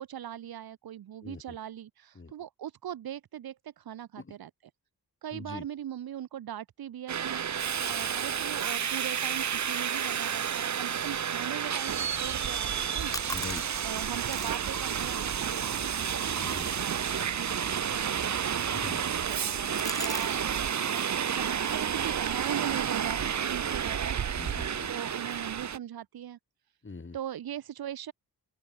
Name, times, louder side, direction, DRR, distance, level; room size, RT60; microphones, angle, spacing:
voice 1, 0.0-4.5 5.2-7.4 7.9-13.2 13.8-18.4 19.2-20.6 20.9-24.2 24.9-26.4 27.1-28.1, right 10 dB, 75° right, 1.1 m, -40 dB
voice 2, 1.2-1.6 2.2-2.3 4.2-4.3 5.3-5.7 13.3-13.6 16.4-16.7 18.7-19.0 24.3-24.9 26.8-27.2, left 4 dB, 30° left, 7.3 m, -42 dB
Subway metro underground, 7.1-25.8, right 8 dB, 50° right, 1.0 m, -31 dB
sound 1, 12.7-20.4 20.7-21.1 21.6-23.9, left 1 dB, 10° left, 1.7 m, -45 dB
open air
cardioid pair, 90°, 37 cm